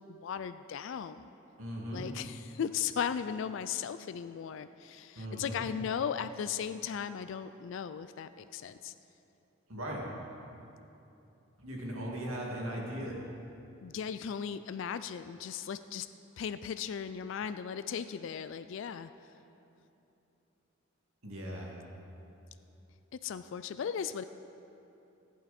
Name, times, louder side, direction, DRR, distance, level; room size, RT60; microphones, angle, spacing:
voice 1, 0.1-1.3 1.9-8.9 13.8-16.1 16.4-19.1 23.1-24.2, left 7 dB, 65° left, 12 dB, 0.3 m, -37 dB
voice 2, 1.6-2.1 5.1-5.7 9.7-10.0 11.6-13.2 21.2-21.7, equal, 90° right, -3 dB, 2.4 m, -38 dB
14.5 x 10.5 x 4.3 m, 2.8 s
head